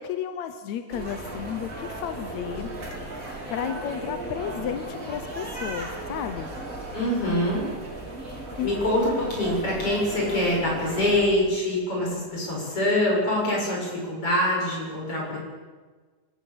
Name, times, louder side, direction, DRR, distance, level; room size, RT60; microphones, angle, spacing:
voice 1, 0.0-2.7 3.1-6.5 8.5-8.7, left 9 dB, 70° left, 9 dB, 1.8 m, -33 dB
sound 1, 0.9-11.2, right 2 dB, 20° right, 4.3 m, -36 dB
voice 2, 6.9-7.7 8.6-15.4, left 1 dB, 35° left, -2 dB, 8.5 m, -25 dB
26.0 x 15.5 x 8.8 m, 1.4 s
omnidirectional pair, 4.2 m